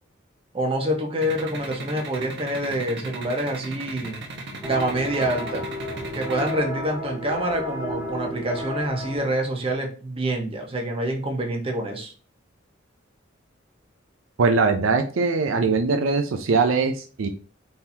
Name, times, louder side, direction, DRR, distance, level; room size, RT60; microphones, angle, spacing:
voice 1, 0.5-4.2 4.6-5.6 6.1-12.1, right 1 dB, 30° right, 1 dB, 1.1 m, -26 dB
sound 1, 1.2-6.5, right 3 dB, 60° right, 1.1 m, -36 dB
sound 2, 4.6-9.6, equal, 10° right, 1.5 m, -33 dB
voice 2, 14.4-17.3, right 4 dB, 80° right, 6 dB, 0.5 m, -21 dB
4.3 x 3.7 x 2.8 m, 0.39 s
head